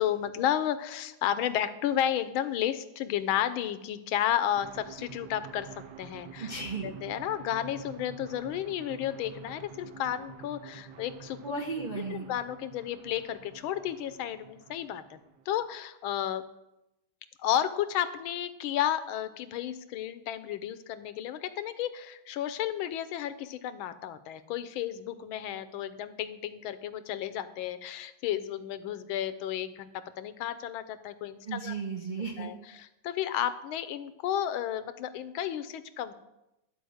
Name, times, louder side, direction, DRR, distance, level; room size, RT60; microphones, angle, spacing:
voice 1, 0.0-6.5 6.8-11.4 12.1-15.0 15.5-16.4 17.4-31.7 32.4-36.1, left 11 dB, 90° left, 12 dB, 1.5 m, -32 dB
sound 1, 4.5-15.7, right 8 dB, 65° right, 1.3 m, -48 dB
voice 2, 6.4-6.9 11.4-12.3 31.5-32.5, right 4 dB, 40° right, -1 dB, 0.6 m, -35 dB
11.5 x 4.7 x 7.8 m, 0.91 s
omnidirectional pair, 2.2 m